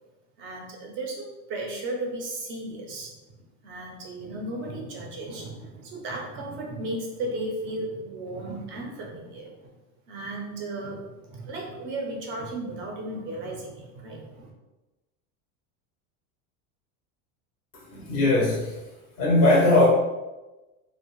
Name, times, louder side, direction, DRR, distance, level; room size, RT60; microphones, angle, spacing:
voice 1, 0.4-3.1 3.6-9.7 10.1-14.5, right 2 dB, 35° right, 0 dB, 0.4 m, -35 dB
voice 2, 17.9-18.7 19.2-19.9, left 2 dB, 25° left, -4 dB, 0.4 m, -19 dB
2.6 x 2.0 x 2.9 m, 1.1 s
cardioid pair, 165°, 37 cm